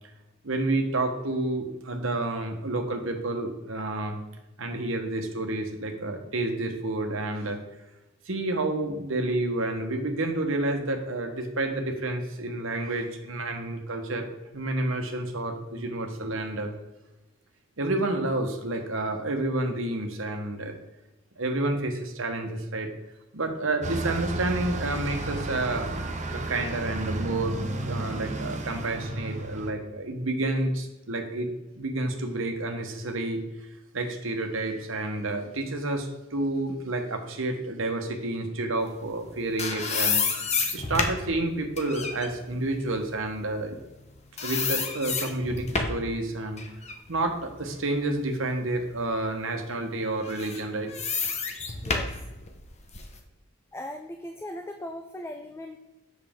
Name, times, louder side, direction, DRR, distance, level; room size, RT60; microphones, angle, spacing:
voice 1, 0.4-4.2 4.6-7.6 8.3-16.7 17.8-20.7 21.4-22.9 23.3-25.9 26.3-31.5 31.8-33.4 33.9-43.8 44.4-46.6 47.1-51.0, right 2 dB, 70° right, 4 dB, 1.2 m, -29 dB
Bus, 23.8-29.7, right 2 dB, 35° right, 0.8 m, -32 dB
sound 1, 39.2-44.1 44.4-46.1 46.6-48.5 49.0-49.1 50.2-53.2, left 4 dB, 35° left, 0.9 m, -30 dB
voice 2, 53.7-55.8, left 1 dB, 10° left, 5 dB, 0.4 m, -38 dB
7.5 x 6.2 x 3.6 m, 1.0 s
head